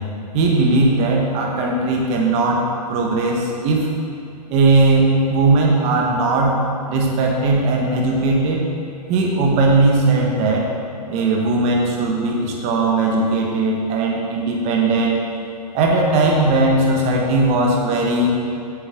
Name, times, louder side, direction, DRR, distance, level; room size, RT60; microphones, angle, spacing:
voice 1, 0.3-3.9 4.5-6.6 6.9-8.6 9.1-10.7 11.1-15.2 15.7-18.3, right 2 dB, 30° right, -1 dB, 1.3 m, -18 dB
8.3 x 7.0 x 3.8 m, 2.6 s
hypercardioid pair, 135°, 21 cm